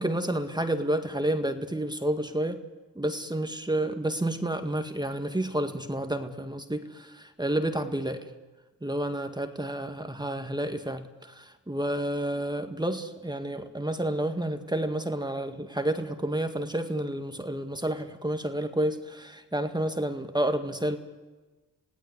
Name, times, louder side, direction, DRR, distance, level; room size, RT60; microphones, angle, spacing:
voice 1, 0.0-2.6 3.0-8.3 8.8-21.0, right 1 dB, 10° right, 7 dB, 1.9 m, -30 dB
28.0 x 16.5 x 9.8 m, 1.3 s
supercardioid pair, 60°, 42 cm